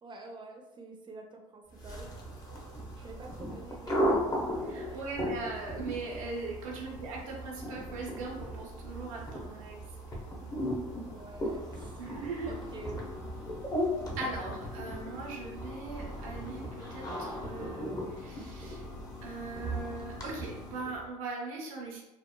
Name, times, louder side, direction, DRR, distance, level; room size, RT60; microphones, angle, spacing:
voice 1, 0.0-2.1 3.0-4.2 4.9-5.1 6.7-6.8 10.7-12.0 12.5-13.1, right 2 dB, 25° right, 2 dB, 0.5 m, -48 dB
sound 1, 1.7-21.0, equal, 20° left, 0.7 m, -37 dB
voice 2, 4.6-9.8 12.0-12.5 14.2-18.9 19.2-22.0, right 3 dB, 80° right, -1 dB, 0.7 m, -40 dB
2.9 x 2.0 x 2.2 m, 1.0 s
hypercardioid pair, 70°, 17 cm